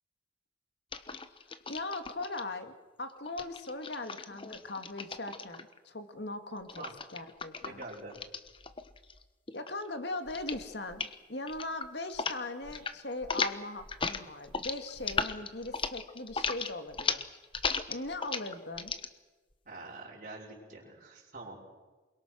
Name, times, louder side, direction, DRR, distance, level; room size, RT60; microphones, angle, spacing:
sound 1, 0.9-2.4 3.2-5.8 6.7-9.2 9.5-9.9 10.3-10.6 10.9-11.2 11.5-12.4 12.6-12.9 13.2-19.1, left 5 dB, 30° left, 1.2 m, -36 dB
voice 1, 1.0-6.8 7.1-7.8 9.5-17.3 17.9-18.9, left 2 dB, 65° left, 7 dB, 2.2 m, -40 dB
voice 2, 7.6-8.2 19.7-21.7, right 2 dB, 45° right, -5 dB, 5.9 m, -45 dB
28.5 x 22.5 x 6.4 m, 1.2 s
head